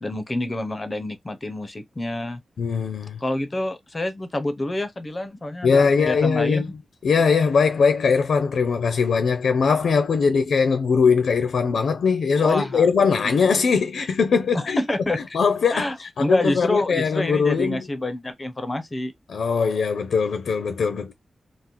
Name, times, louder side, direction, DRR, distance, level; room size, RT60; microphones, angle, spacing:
voice 1, 0.0-2.4 3.2-6.6 12.4-12.9 13.2-13.4 14.5-15.4 15.7-19.1, left 1 dB, 25° left, 0.5 m, -27 dB
voice 2, 2.6-3.2 5.6-6.7 7.0-14.8 15.3-15.9 16.2-17.8 19.3-21.1, left 5 dB, 90° left, 0.5 m, -20 dB
3.7 x 2.0 x 2.9 m
wide cardioid pair, 160°, 0 cm